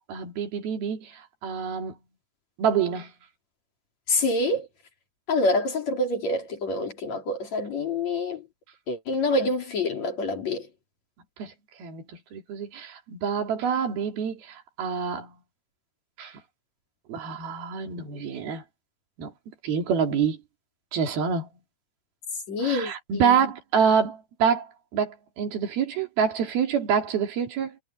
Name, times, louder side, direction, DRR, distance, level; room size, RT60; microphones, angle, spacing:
voice 1, 0.1-2.0 2.6-3.1 11.4-11.5 11.8-15.3 16.2-16.3 17.1-18.6 19.2-19.3 19.6-20.4 20.9-21.5 22.6-27.8, right 7 dB, 80° right, 4.7 m, -27 dB
voice 2, 4.1-4.7 5.3-8.4 8.9-10.7 22.5-23.4, left 2 dB, 50° left, 4.5 m, -26 dB
omnidirectional pair, 4.3 m